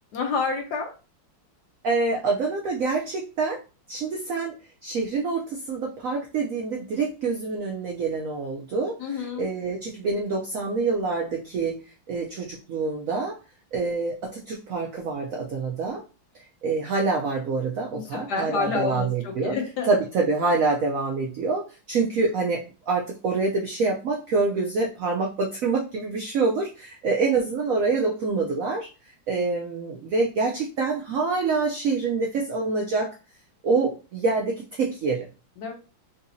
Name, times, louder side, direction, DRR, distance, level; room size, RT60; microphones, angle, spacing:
voice 1, 0.1-0.9 9.0-9.5 17.9-19.9 35.6-35.7, left 4 dB, 65° left, 3 dB, 1.1 m, -29 dB
voice 2, 1.8-3.6 3.9-4.5 4.8-13.4 13.7-16.0 16.6-19.6 19.9-28.9 29.3-33.1 33.6-35.3, right 4 dB, 80° right, 0 dB, 0.7 m, -26 dB
4.0 x 2.8 x 2.6 m, 0.33 s
omnidirectional pair, 2.1 m